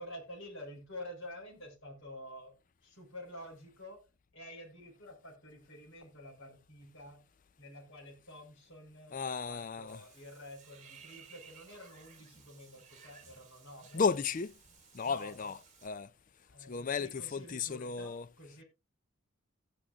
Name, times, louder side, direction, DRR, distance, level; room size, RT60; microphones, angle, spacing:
voice 1, 0.0-2.5 2.8-4.1 4.3-7.2 7.6-14.0 15.0-15.5 16.4-18.6, left 1 dB, 60° left, 4.9 m, -49 dB
voice 2, 9.1-10.0 13.9-14.5 14.9-16.1 16.6-18.3, left 5 dB, 35° left, 0.4 m, -34 dB
Water / Bathtub (filling or washing), 9.9-15.9, right 6 dB, 35° right, 2.3 m, -58 dB
15.5 x 8.8 x 2.5 m
head